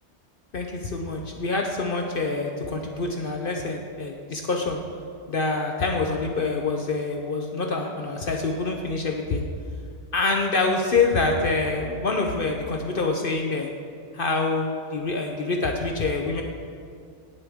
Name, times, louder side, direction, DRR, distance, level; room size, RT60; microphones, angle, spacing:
voice 1, 0.5-4.8 5.3-9.4 10.1-13.7 14.1-16.4, left 3 dB, 50° left, 2 dB, 0.9 m, -26 dB
17.5 x 6.9 x 3.6 m, 2.3 s
omnidirectional pair, 1.2 m